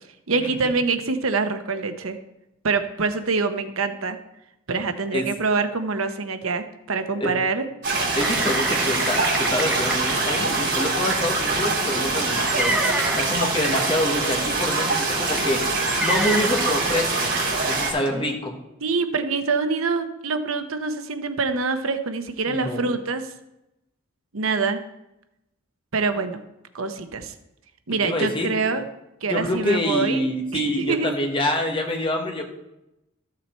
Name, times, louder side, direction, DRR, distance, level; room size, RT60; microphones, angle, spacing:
voice 1, 0.3-2.2 2.6-4.2 4.7-7.6 18.8-23.2 24.3-24.8 25.9-26.4 26.7-27.3 27.9-28.9 29.2-30.2 30.5-31.1, right 4 dB, 85° right, 9 dB, 0.9 m, -25 dB
sound 1, 7.8-17.9, right 3 dB, 55° right, 3.9 m, -24 dB
voice 2, 8.1-12.8 13.2-15.6 16.0-17.3 17.6-18.6 22.5-22.9 28.0-28.5 29.2-32.4, left 1 dB, 25° left, 2 dB, 1.4 m, -26 dB
sound 2, 8.2-10.1 11.4-13.3 14.2-14.4 14.9-15.0 15.7-16.8 17.5-17.6 18.0-18.1, right 1 dB, 5° right, 0.9 m, -28 dB
13.5 x 7.2 x 4.5 m, 0.90 s
head